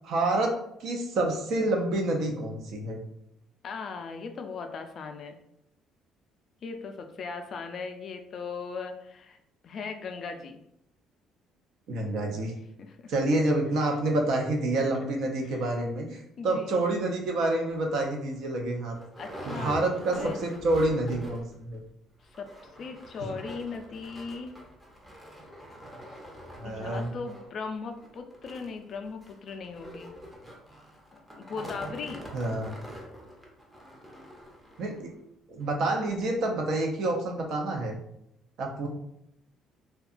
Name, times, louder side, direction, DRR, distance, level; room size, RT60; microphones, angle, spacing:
voice 1, 0.0-0.5 0.8-3.0 11.9-12.5 13.1-18.9 19.5-21.8 23.3-23.4 26.6-27.1 32.3-32.7 34.8-35.1 35.5-38.0 38.6-38.9, right 2 dB, 65° right, 1 dB, 0.5 m, -28 dB
voice 2, 3.6-5.4 6.6-9.4 9.6-10.6 12.8-13.1 15.4-15.7 16.4-16.7 19.2-19.7 20.2-20.4 22.3-24.6 26.6-30.1 31.1-32.3, left 5 dB, 50° left, 6 dB, 0.3 m, -38 dB
sound 1, 17.7-17.8 18.3-18.4 18.6-21.6 21.9-22.0 22.2-35.0 35.6-35.7 36.1-36.2, equal, 5° right, 0.6 m, -45 dB
2.7 x 2.2 x 2.4 m, 0.79 s
cardioid pair, 115°, 0 cm